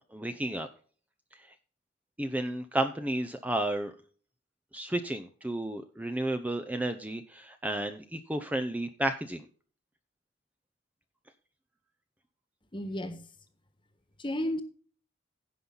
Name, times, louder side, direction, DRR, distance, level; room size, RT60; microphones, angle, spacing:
voice 1, 0.1-0.7 2.2-3.9 4.7-9.4, right 1 dB, 10° right, 0.6 m, -32 dB
voice 2, 12.7-13.3 14.2-14.6, left 1 dB, 25° left, 1.4 m, -33 dB
16.0 x 5.6 x 3.9 m
head